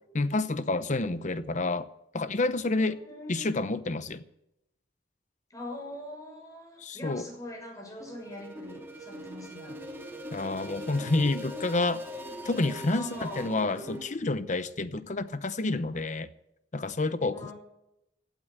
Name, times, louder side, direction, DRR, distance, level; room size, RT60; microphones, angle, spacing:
voice 1, 0.1-1.9 2.1-3.0 3.3-4.2 6.8-7.3 10.3-12.0 12.4-16.3 16.7-17.5, left 2 dB, 45° left, 0.8 m, -29 dB
voice 2, 2.8-3.4 5.5-9.8 12.9-13.6 17.3-17.5, left 1 dB, 20° left, 6.7 m, -42 dB
sound 1, 8.0-14.0, equal, 15° right, 2.5 m, -41 dB
16.5 x 9.1 x 7.9 m
head